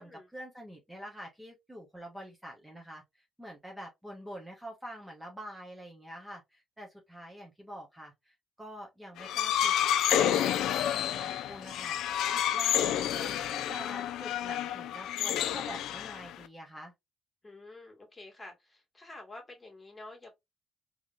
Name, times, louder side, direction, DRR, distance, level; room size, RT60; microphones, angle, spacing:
voice 1, 0.0-12.0 12.3-16.9, equal, 10° right, 1.0 m, -46 dB
sound 1, 9.2-16.5, left 10 dB, 85° left, 0.3 m, -29 dB
voice 2, 17.4-20.3, left 2 dB, 20° left, 1.8 m, -49 dB
3.5 x 3.0 x 2.4 m
cardioid pair, 90°, 0 cm